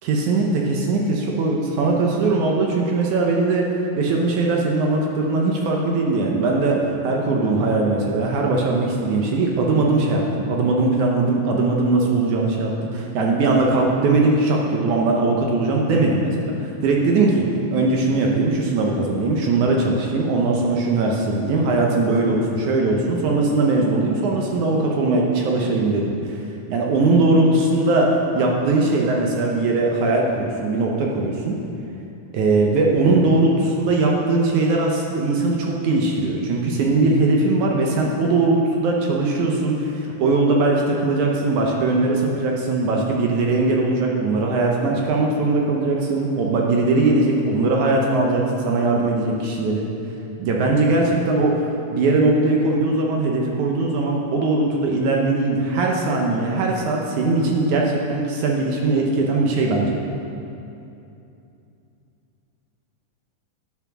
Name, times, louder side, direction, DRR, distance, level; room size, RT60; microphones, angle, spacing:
voice 1, 0.0-3.7 4.0-17.5 17.7-26.4 26.7-31.6 32.3-49.9 50.4-60.0, right 3 dB, 70° right, -1 dB, 2.0 m, -20 dB
10.5 x 5.8 x 6.0 m, 2.7 s
omnidirectional pair, 4.1 m